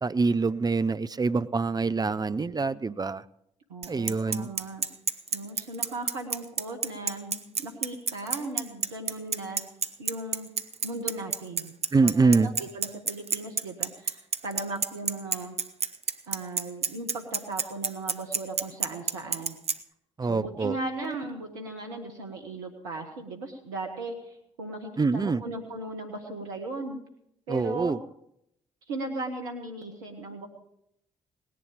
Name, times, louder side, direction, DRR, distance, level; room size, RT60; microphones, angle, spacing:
voice 1, 0.0-3.2 3.9-4.5 11.9-12.5 20.2-20.8 25.0-25.4 27.5-28.0, right 4 dB, 25° right, 0.7 m, -25 dB
voice 2, 3.7-4.9 5.3-9.6 10.0-10.5 10.8-11.7 12.0-15.6 16.3-19.6 20.3-27.0 27.5-28.0 28.9-30.5, right 2 dB, 80° right, 1.3 m, -37 dB
Bicycle, 3.8-19.8, right 6 dB, 40° right, 1.0 m, -28 dB
18.5 x 11.0 x 5.0 m
hypercardioid pair, 45°, 16 cm